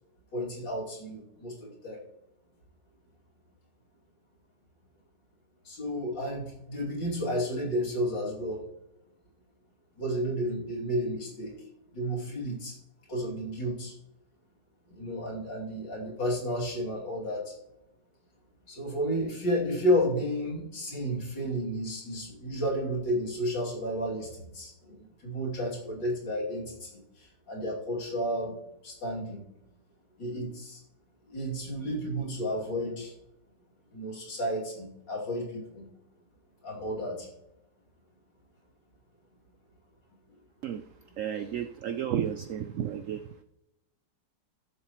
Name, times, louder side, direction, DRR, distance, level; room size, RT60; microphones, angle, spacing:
voice 1, 0.3-2.0 5.6-8.6 10.0-11.6 11.9-12.7 13.1-13.9 14.9-17.5 18.7-28.6 28.8-29.4 30.2-30.8 31.3-33.1 33.9-35.8 36.6-37.3, equal, 85° left, -4 dB, 3.5 m, -32 dB
voice 2, 41.2-43.2, right 9 dB, 85° right, 10 dB, 0.7 m, -32 dB
15.0 x 7.2 x 3.0 m, 0.87 s
omnidirectional pair, 1.9 m